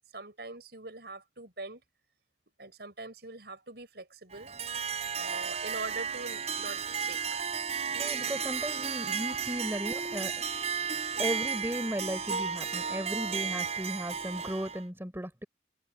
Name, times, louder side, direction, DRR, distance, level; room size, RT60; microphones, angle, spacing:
voice 1, 0.0-1.8 2.6-4.6 5.2-7.4, right 2 dB, 60° right, 7.0 m, -43 dB
Harp, 4.3-14.8, right 6 dB, 35° right, 4.6 m, -34 dB
voice 2, 8.0-10.7 11.2-15.5, equal, 15° right, 4.4 m, -36 dB
head